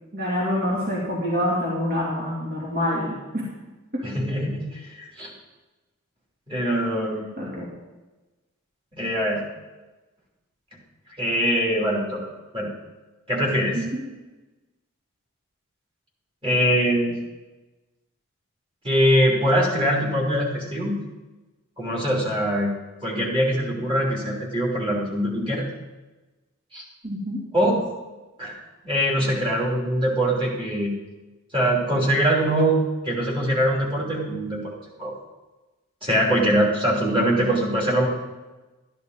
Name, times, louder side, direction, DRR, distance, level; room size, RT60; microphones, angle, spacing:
voice 1, 0.1-3.4 3.9-4.0 7.2-7.7 13.7-14.0 27.0-27.4, equal, 45° right, -6 dB, 2.7 m, -26 dB
voice 2, 4.0-5.3 6.5-7.2 8.9-9.4 11.2-12.3 12.5-12.7 13.3-13.8 16.4-17.1 18.8-20.9 21.8-22.7 23.0-25.6 26.7-26.8 27.5-27.8 28.4-30.9 31.5-34.7 35.0-35.1 36.0-38.1, equal, 25° right, -3 dB, 3.1 m, -23 dB
12.5 x 11.0 x 4.0 m, 1.1 s
head